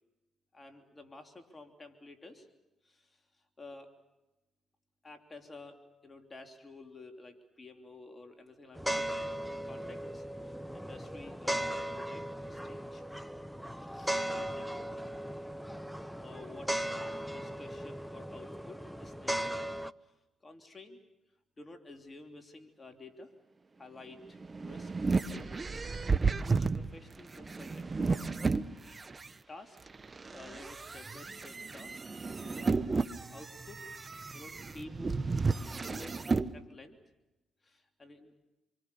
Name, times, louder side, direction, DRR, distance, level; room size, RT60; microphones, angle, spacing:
voice 1, 0.5-2.5 2.8-3.9 5.0-9.1 9.6-13.0 13.6-14.9 16.1-16.9 17.3-19.6 20.0-20.1 20.4-21.0 21.6-23.3 23.8-25.7 26.2-28.1 29.5-29.8 30.3-35.3 35.8-36.2 36.5-37.0 37.6-38.4, left 2 dB, 30° left, 5 dB, 3.2 m, -51 dB
sound 1, 8.8-19.9, right 1 dB, ahead, 0.9 m, -37 dB
sound 2, 24.2-29.3 29.9-36.5, right 4 dB, 35° right, 1.2 m, -33 dB
28.0 x 24.5 x 7.0 m, 1.0 s
supercardioid pair, 60°, 0 cm